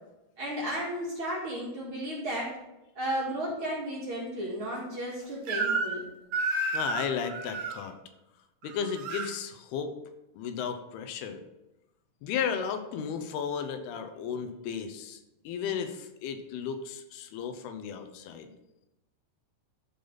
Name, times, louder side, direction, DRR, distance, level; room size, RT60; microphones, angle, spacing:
voice 1, 0.4-2.5 3.0-6.0, right 1 dB, 40° right, -5 dB, 2.3 m, -33 dB
Crying sobbing / Screech, 5.5-6.0 6.3-7.8 8.6-9.3, right 3 dB, 85° right, 1.3 m, -31 dB
voice 2, 6.7-7.9 8.6-9.9 10.4-11.4 12.2-15.2 15.5-18.5, left 7 dB, 85° left, 7 dB, 2.8 m, -34 dB
13.5 x 5.2 x 4.0 m, 0.96 s
omnidirectional pair, 4.5 m